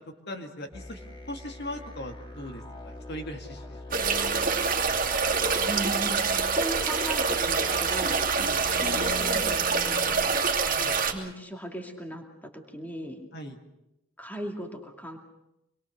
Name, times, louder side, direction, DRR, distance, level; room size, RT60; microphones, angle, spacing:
voice 1, 0.3-1.0 1.3-4.0 8.4-8.6 10.6-11.1 13.3-13.6, left 1 dB, 50° left, 3 dB, 2.2 m, -40 dB
sound 1, 0.7-9.6, left 1 dB, 25° left, 2.0 m, -43 dB
sound 2, 3.9-11.1, right 5 dB, 40° right, 2.6 m, -26 dB
voice 2, 5.7-6.2 6.5-8.3 8.8-10.2 11.1-13.2 14.2-15.2, right 1 dB, 10° left, 2 dB, 2.4 m, -37 dB
26.0 x 21.5 x 6.5 m, 0.85 s
head